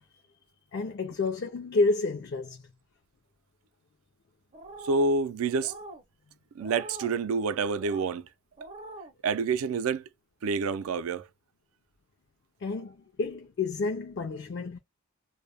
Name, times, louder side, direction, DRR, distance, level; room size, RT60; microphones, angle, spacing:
voice 1, 0.7-2.6 12.6-14.8, left 3 dB, 55° left, 0.4 m, -29 dB
sound 1, 4.5-5.1 5.6-6.0 6.6-7.2 7.7-8.1 8.6-9.1, right 2 dB, 35° right, 0.5 m, -44 dB
voice 2, 4.8-5.8 6.6-8.3 9.2-10.0 10.4-11.3, right 4 dB, 85° right, 0.4 m, -28 dB
2.1 x 2.1 x 3.2 m
head